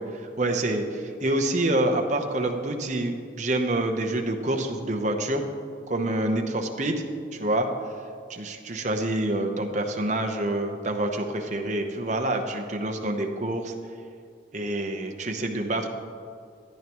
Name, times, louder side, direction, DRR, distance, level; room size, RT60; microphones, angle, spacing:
voice 1, 0.0-5.4 5.9-7.0 7.3-7.7 8.3-13.7 14.5-15.9, right 1 dB, 40° right, 4 dB, 0.9 m, -27 dB
14.0 x 11.0 x 3.1 m, 2.2 s
head